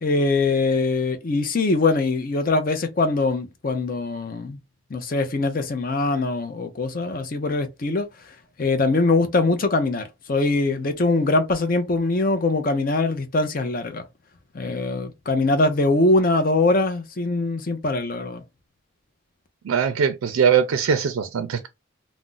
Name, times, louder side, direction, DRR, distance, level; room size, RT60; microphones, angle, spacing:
voice 1, 0.0-4.6 4.9-8.1 8.6-14.0 14.5-18.4, left 2 dB, 45° left, 0.5 m, -22 dB
voice 2, 19.6-21.7, right 7 dB, 85° right, 0.4 m, -21 dB
2.4 x 2.1 x 3.8 m
head